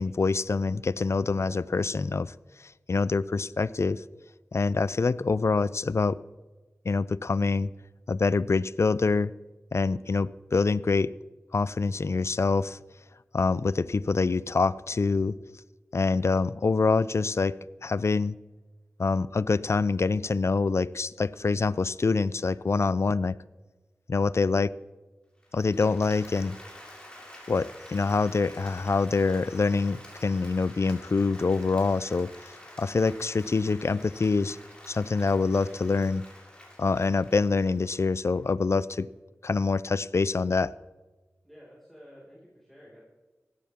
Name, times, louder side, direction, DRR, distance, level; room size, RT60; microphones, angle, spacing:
voice 1, 0.0-2.3 2.9-4.0 4.5-6.2 6.9-7.7 8.1-9.3 9.7-11.1 11.5-12.8 13.3-15.4 15.9-17.5 17.8-18.4 19.0-23.4 24.1-24.7 25.5-26.6 27.5-34.6 34.9-36.2 36.8-39.1 39.4-40.7, left 4 dB, 60° left, 19 dB, 0.4 m, -25 dB
Applause, 25.4-38.4, left 1 dB, 20° left, 6.0 m, -49 dB
voice 2, 41.4-43.0, equal, 5° left, -7 dB, 5.3 m, -52 dB
17.5 x 14.0 x 3.6 m, 1.2 s
wide cardioid pair, 45°, 5 cm